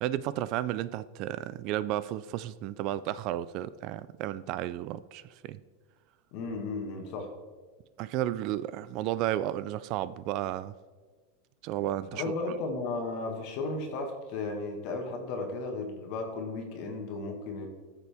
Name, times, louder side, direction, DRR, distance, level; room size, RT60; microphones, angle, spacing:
voice 1, 0.0-5.6 8.0-10.7 11.6-12.2, right 13 dB, 45° right, 17 dB, 0.3 m, -33 dB
voice 2, 6.3-7.3 12.1-17.7, left 3 dB, 50° left, 4 dB, 1.5 m, -34 dB
13.5 x 6.8 x 3.5 m, 1.4 s
supercardioid pair, 150°, 0 cm